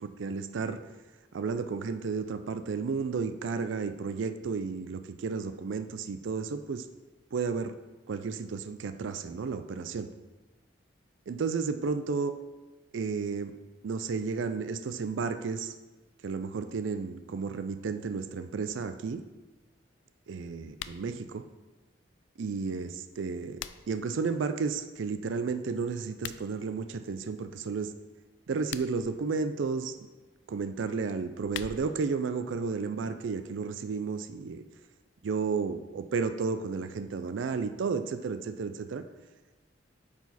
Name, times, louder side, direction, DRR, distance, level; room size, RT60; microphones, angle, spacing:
voice 1, 0.0-0.8 1.3-6.9 7.3-7.7 8.1-10.1 11.3-12.3 12.9-13.5 13.8-15.7 16.2-19.2 20.3-21.4 22.4-23.6 23.9-27.9 28.5-29.9 30.5-34.6 35.2-39.0, right 5 dB, 90° right, 10 dB, 0.4 m, -32 dB
sound 1, 20.7-21.1 23.1-24.1 26.1-26.4 28.5-29.1 31.1-32.1, left 10 dB, 75° left, 0.3 m, -43 dB
8.5 x 4.7 x 4.1 m, 1.2 s
head